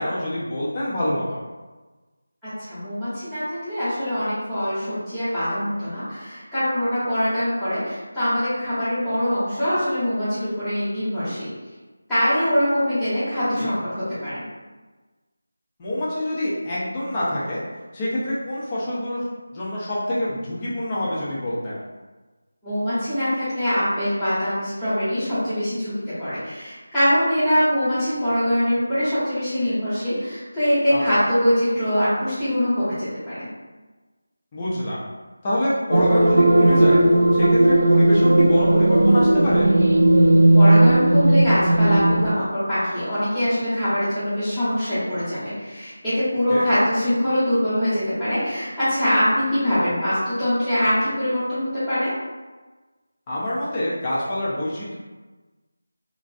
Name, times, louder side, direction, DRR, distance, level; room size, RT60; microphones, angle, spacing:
voice 1, 0.0-1.4 13.5-13.7 15.8-17.6 17.9-19.2 19.5-21.8 30.9-31.0 34.5-35.0 35.4-37.0 37.3-39.7 46.5-46.7 53.3-55.0, left 1 dB, 20° left, -8 dB, 0.6 m, -26 dB
voice 2, 2.4-11.5 12.1-14.4 22.6-25.9 26.2-33.5 40.6-52.1, equal, ahead, -20 dB, 1.0 m, -23 dB
sound 1, 35.9-42.3, right 1 dB, 70° right, 0.3 m, -16 dB
3.0 x 2.4 x 2.6 m, 1.3 s
figure-of-eight pair, 165°, 0 cm